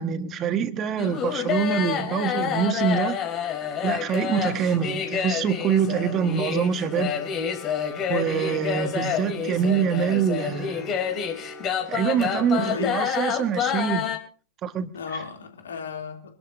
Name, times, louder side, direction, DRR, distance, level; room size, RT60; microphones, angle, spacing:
voice 1, 0.0-3.2 3.8-7.1 8.1-10.9 11.9-14.1 14.6-14.9, right 7 dB, 30° right, 1.6 m, -25 dB
sound 1, 1.0-14.2, left 8 dB, 35° left, 3.4 m, -28 dB
voice 2, 12.3-13.2 14.9-16.3, left 6 dB, 65° left, 2.9 m, -35 dB
26.0 x 13.0 x 2.7 m
figure-of-eight pair, 90°, 0 cm